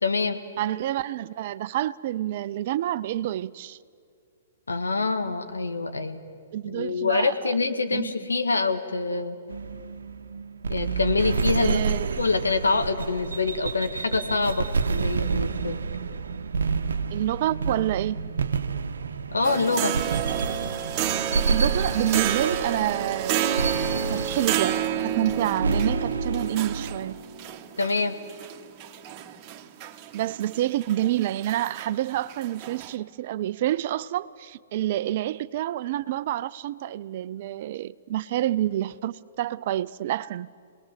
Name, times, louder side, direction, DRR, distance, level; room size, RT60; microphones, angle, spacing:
voice 1, 0.0-0.4 4.7-6.2 6.6-9.4 10.7-11.8 12.1-15.8 19.3-20.0 27.8-28.2, left 3 dB, 85° left, 1.8 m, -25 dB
voice 2, 0.6-3.8 6.5-7.5 7.9-8.1 11.6-12.2 17.1-18.2 21.5-23.7 24.1-24.8 25.0-27.2 30.1-40.5, right 13 dB, 50° right, 0.5 m, -28 dB
sound 1, 9.5-27.1, right 4 dB, 75° right, 0.9 m, -29 dB
sound 2, 19.4-32.9, right 9 dB, 30° right, 1.6 m, -30 dB
26.5 x 19.5 x 7.6 m
hypercardioid pair, 125°, 0 cm